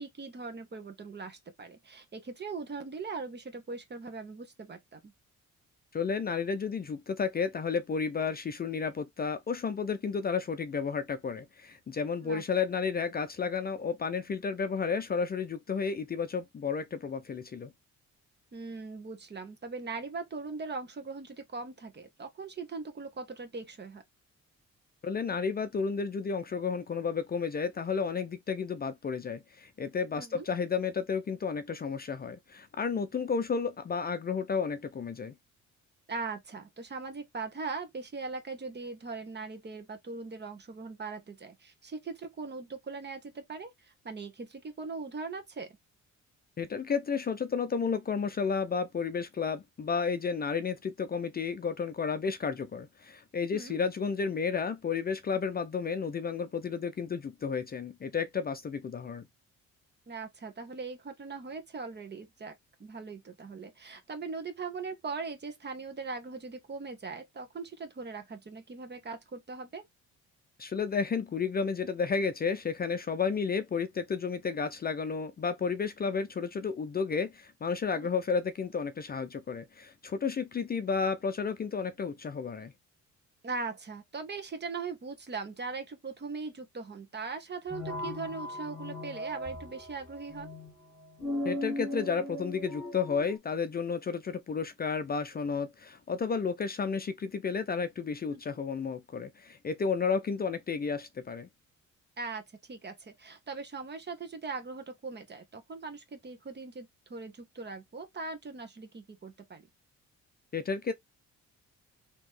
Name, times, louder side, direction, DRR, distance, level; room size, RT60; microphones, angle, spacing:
voice 1, 0.0-5.0 12.2-12.4 18.5-24.0 30.2-30.5 36.1-45.8 53.5-53.8 60.1-62.5 62.8-69.8 77.9-78.1 83.4-90.5 98.3-98.4 102.2-109.6, right 4 dB, 35° right, 1.3 m, -40 dB
voice 2, 5.9-17.7 25.0-35.3 46.6-59.2 70.6-82.7 91.4-101.5 110.5-110.9, left 5 dB, 30° left, 0.5 m, -32 dB
sound 1, 87.7-93.4, left 1 dB, ahead, 1.9 m, -38 dB
4.0 x 3.0 x 3.1 m
cardioid pair, 90°, 30 cm